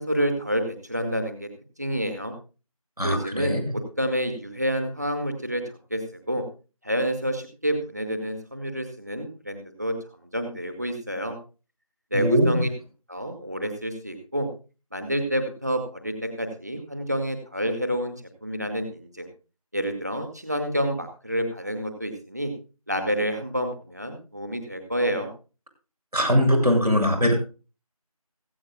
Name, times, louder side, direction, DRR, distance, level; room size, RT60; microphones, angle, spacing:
voice 1, 0.0-1.5 1.8-2.3 3.0-5.6 5.9-6.0 6.3-6.4 6.8-10.0 10.3-11.4 12.1-12.7 13.1-14.5 14.9-18.1 18.4-19.3 19.7-22.5 22.9-25.3, equal, 25° right, 7 dB, 2.1 m, -28 dB
voice 2, 3.0-3.6 12.1-12.6 26.1-27.3, equal, 90° right, 3 dB, 7.2 m, -21 dB
16.5 x 15.5 x 2.3 m, 0.33 s
figure-of-eight pair, 175°, 19 cm